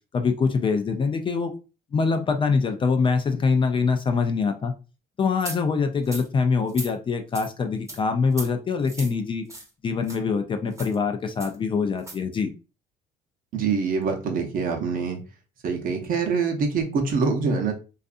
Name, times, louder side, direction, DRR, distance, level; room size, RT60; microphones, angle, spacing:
voice 1, 0.1-1.5 1.9-4.7 5.2-9.4 9.8-12.5, left 5 dB, 30° left, 7 dB, 0.3 m, -24 dB
sound 1, 5.4-5.6 6.0-6.3 6.7-6.9 7.3-7.5 7.9-8.0 8.3-8.5 8.8-9.1 9.5-9.7 10.0-10.2 10.7-10.9 11.4-11.5 12.0-12.2, right 2 dB, 20° right, 0.8 m, -37 dB
voice 2, 13.5-15.2 15.6-17.7, right 5 dB, 55° right, 3 dB, 0.7 m, -25 dB
2.5 x 2.4 x 2.3 m, 0.32 s
cardioid pair, 110°, 17 cm